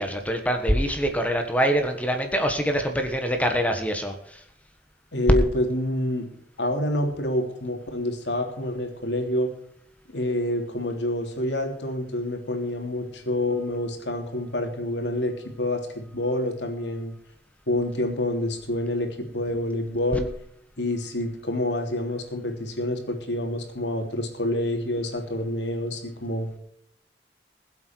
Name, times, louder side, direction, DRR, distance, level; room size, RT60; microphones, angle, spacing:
voice 1, 0.0-4.4, equal, 10° left, 5 dB, 1.4 m, -25 dB
voice 2, 5.1-6.3 6.6-9.5 10.1-17.1 17.7-20.3 20.8-26.5, left 1 dB, 90° left, 3 dB, 3.3 m, -27 dB
21.0 x 8.0 x 4.6 m, 0.69 s
head